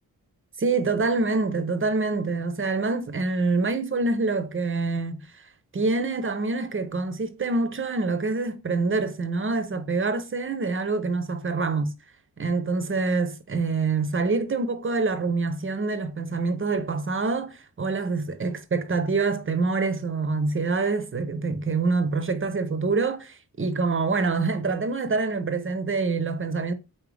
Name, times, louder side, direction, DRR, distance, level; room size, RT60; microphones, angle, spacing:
voice 1, 0.6-5.4 5.7-11.9 12.4-26.7, right 3 dB, 35° right, 0.6 m, -26 dB
4.2 x 3.8 x 3.3 m
wide cardioid pair, 105°, 37 cm